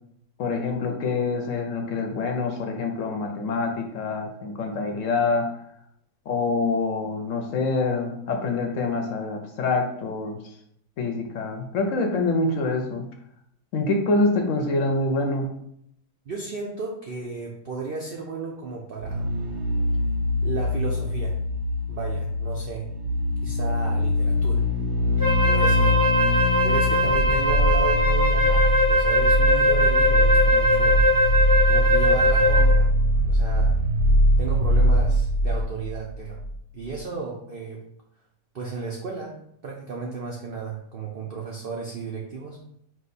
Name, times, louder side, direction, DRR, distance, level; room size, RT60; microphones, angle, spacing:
voice 1, 0.4-5.5 6.3-10.4 11.0-13.0 13.7-15.5, left 3 dB, 65° left, 3 dB, 0.9 m, -25 dB
voice 2, 16.3-19.3 20.4-21.3 21.9-22.9 23.4-24.7 25.5-25.9 26.6-31.0 31.7-32.9 33.2-33.8 34.4-36.4 36.7-37.8 38.5-42.6, right 4 dB, 65° right, -1 dB, 0.5 m, -34 dB
sound 1, 19.0-36.5 36.8-36.9, equal, 90° right, 1.2 m, -22 dB
Wind instrument woodwind instrument, 25.2-32.8, left 1 dB, 15° right, 0.7 m, -21 dB
5.0 x 2.2 x 4.0 m, 0.72 s
omnidirectional pair, 1.7 m